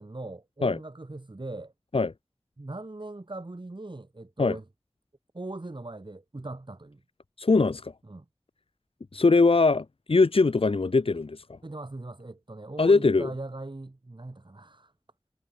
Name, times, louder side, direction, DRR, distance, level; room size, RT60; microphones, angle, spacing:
voice 1, 0.0-1.7 2.6-4.6 5.3-7.0 8.1-8.2 11.6-14.9, right 2 dB, 55° right, 2.8 m, -40 dB
voice 2, 7.4-7.9 9.1-11.6 12.8-13.3, left 3 dB, 80° left, 0.8 m, -22 dB
wide cardioid pair, 45°, 9 cm